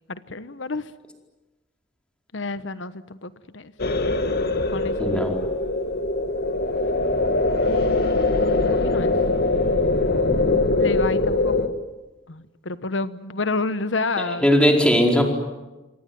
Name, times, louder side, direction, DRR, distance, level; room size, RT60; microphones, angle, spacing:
voice 1, 0.1-0.9 2.3-3.7 4.7-5.2 7.6-9.1 10.8-11.8 12.3-14.5, left 3 dB, 80° left, 13 dB, 1.2 m, -30 dB
sound 1, 3.8-11.7, left 2 dB, 55° left, 1.8 m, -22 dB
voice 2, 5.0-5.4 10.3-10.6 14.4-15.2, equal, 5° left, 2 dB, 4.7 m, -19 dB
27.0 x 24.0 x 9.4 m, 1.1 s
head